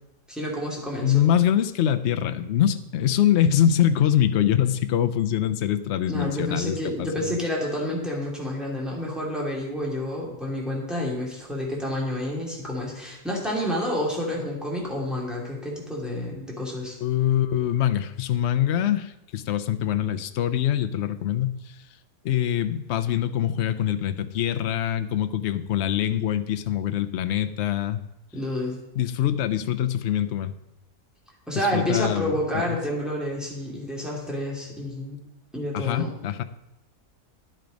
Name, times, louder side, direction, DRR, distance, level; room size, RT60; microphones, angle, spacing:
voice 1, 0.3-1.3 6.1-17.0 28.3-28.8 31.5-35.2 35.5-36.1, left 1 dB, ahead, -4 dB, 2.8 m, -29 dB
voice 2, 1.0-7.4 17.0-21.6 22.2-28.0 29.0-30.5 31.7-32.3 32.7-32.8 35.7-36.4, left 10 dB, 60° left, 10 dB, 0.7 m, -24 dB
11.0 x 7.6 x 5.2 m, 0.87 s
omnidirectional pair, 1.7 m